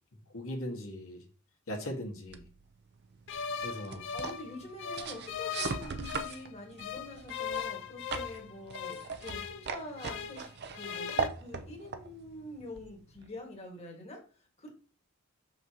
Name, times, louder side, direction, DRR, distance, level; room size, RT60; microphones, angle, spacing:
voice 1, 0.3-1.2 1.7-2.4 3.6-4.0, left 1 dB, 90° left, 0 dB, 1.7 m, -38 dB
sound 1, 2.3-13.4, right 5 dB, 50° right, 0.6 m, -40 dB
sound 2, 3.3-6.5 6.8-10.5 10.7-11.3, left 7 dB, 60° left, 0.5 m, -39 dB
voice 2, 4.1-14.7, left 2 dB, 30° left, 0 dB, 1.6 m, -46 dB
6.4 x 5.6 x 2.9 m, 0.38 s
head